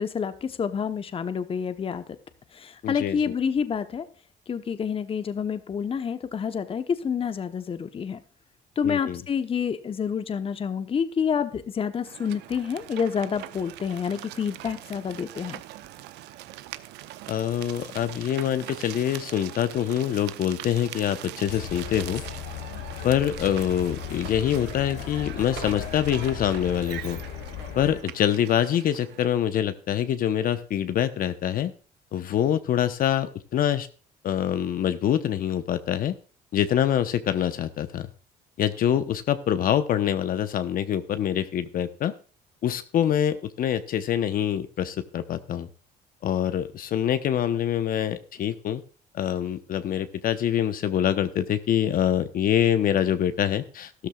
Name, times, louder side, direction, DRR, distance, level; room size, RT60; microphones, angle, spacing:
voice 1, 0.0-2.0 2.5-4.1 4.5-8.2 8.8-15.6, left 7 dB, 35° left, 11 dB, 1.0 m, -28 dB
voice 2, 2.8-3.3 8.8-9.2 17.3-22.2 23.0-27.2 27.7-31.7 32.1-33.9 34.2-36.1 36.5-38.1 38.6-42.1 42.6-45.7 46.2-48.8 49.1-54.1, left 10 dB, 60° left, 11 dB, 1.0 m, -25 dB
sound 1, 12.0-29.3, right 14 dB, 85° right, 0.8 m, -42 dB
sound 2, 21.5-28.0, left 11 dB, 80° left, 1.4 m, -37 dB
13.5 x 13.0 x 2.4 m, 0.37 s
cardioid pair, 110°, 17 cm